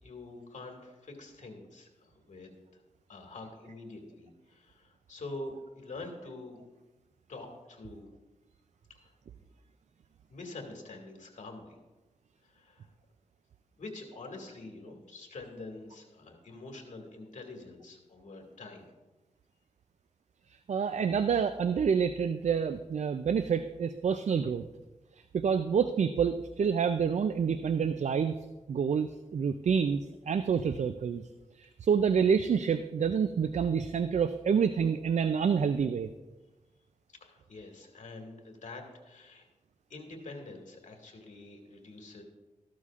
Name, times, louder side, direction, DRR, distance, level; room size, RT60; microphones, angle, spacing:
voice 1, 0.0-2.8 3.1-6.6 7.3-8.1 9.0-9.1 9.4-9.5 10.3-11.8 12.4-12.9 13.8-18.9 37.2-39.5 39.9-42.2, left 2 dB, 75° left, 2 dB, 2.0 m, -46 dB
voice 2, 20.7-24.6 25.3-28.3 28.7-30.0 30.3-31.2 31.6-36.1, right 6 dB, 65° right, 10 dB, 0.4 m, -28 dB
13.5 x 12.5 x 2.5 m, 1.1 s
wide cardioid pair, 80°, 13 cm